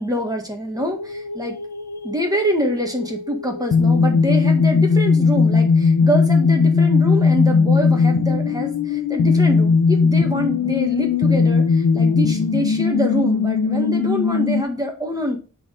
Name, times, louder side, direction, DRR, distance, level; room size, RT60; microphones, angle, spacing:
voice 1, 0.0-1.6 2.0-15.4, equal, 10° right, 2 dB, 1.7 m, -25 dB
sound 1, 0.8-14.6, left 4 dB, 80° left, 0.9 m, -18 dB
7.7 x 4.1 x 5.2 m, 0.34 s
wide cardioid pair, 135°, 32 cm